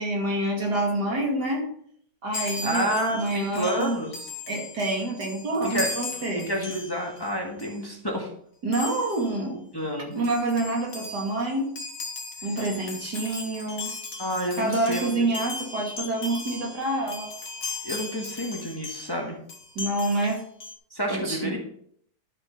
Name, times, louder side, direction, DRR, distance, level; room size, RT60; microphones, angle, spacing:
voice 1, 0.0-1.7 2.2-4.0 4.5-6.5 8.6-9.6 10.1-11.7 12.4-13.9 14.6-17.3 19.7-20.4 21.1-21.6, right 2 dB, 75° right, -1 dB, 3.1 m, -27 dB
Chime, 2.3-7.3 7.6-7.8 8.7-9.3 9.9-10.0 10.2-19.2 19.5-20.7, left 3 dB, 55° left, 1.8 m, -37 dB
voice 2, 2.6-4.1 5.6-5.9 6.4-8.3 9.7-10.2 14.2-15.1 17.8-19.4 20.9-21.6, equal, 15° left, 0 dB, 1.7 m, -29 dB
12.0 x 7.6 x 4.0 m, 0.64 s
omnidirectional pair, 1.8 m